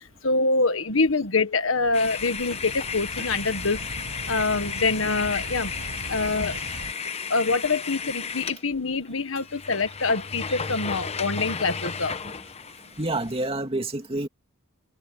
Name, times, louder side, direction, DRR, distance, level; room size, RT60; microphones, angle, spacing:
voice 1, 0.0-3.8 4.3-5.7 6.1-6.6 7.3-12.1, left 3 dB, 70° left, 1.5 m, -25 dB
sound 1, 1.7-6.9, right 2 dB, 85° right, 4.9 m, -39 dB
sound 2, 1.9-8.6 9.1-9.2 9.4-13.5, left 6 dB, 30° left, 0.9 m, -34 dB
voice 2, 10.5-11.5 12.2-12.3 13.0-14.3, right 2 dB, 30° right, 2.5 m, -30 dB
head